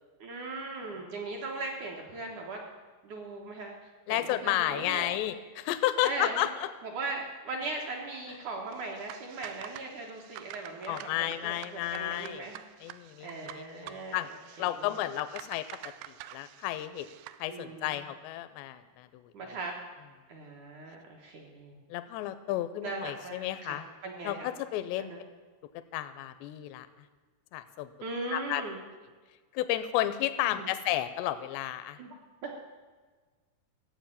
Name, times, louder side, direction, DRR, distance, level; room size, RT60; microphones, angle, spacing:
voice 1, 0.2-2.6 3.0-3.8 4.1-5.1 6.0-6.5 6.8-12.6 13.2-15.1 17.5-18.0 19.3-19.7 20.3-21.8 22.8-24.6 25.0-25.3 28.0-28.9 30.4-30.8 32.0-32.1 32.4-32.6, right 3 dB, 65° right, 0 dB, 2.0 m, -39 dB
voice 2, 4.1-6.7 10.9-12.5 12.8-14.3 14.6-15.7 16.1-17.1 17.4-19.3 21.9-23.8 24.2-25.1 25.9-26.9 27.5-27.9 28.3-28.6 29.5-32.0, left 14 dB, 85° left, 11 dB, 2.7 m, -32 dB
sound 1, 8.7-17.4, right 13 dB, 90° right, 2.9 m, -48 dB
14.5 x 7.6 x 8.8 m, 1.4 s
omnidirectional pair, 5.0 m